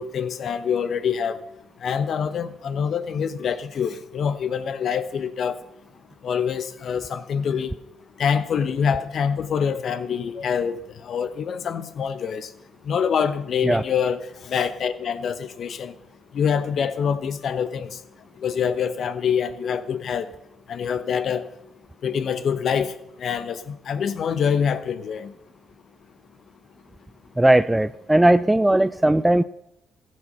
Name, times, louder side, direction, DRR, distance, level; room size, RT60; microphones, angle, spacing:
voice 1, 0.0-1.4 1.8-5.5 6.2-7.7 8.2-12.5 12.9-15.9 16.3-17.9 18.4-20.3 20.7-21.4 22.0-22.9 23.2-25.3, left 7 dB, 60° left, 1.0 m, -25 dB
voice 2, 27.4-29.4, right 1 dB, 10° right, 0.4 m, -18 dB
15.0 x 7.7 x 5.7 m
supercardioid pair, 60°, 0 cm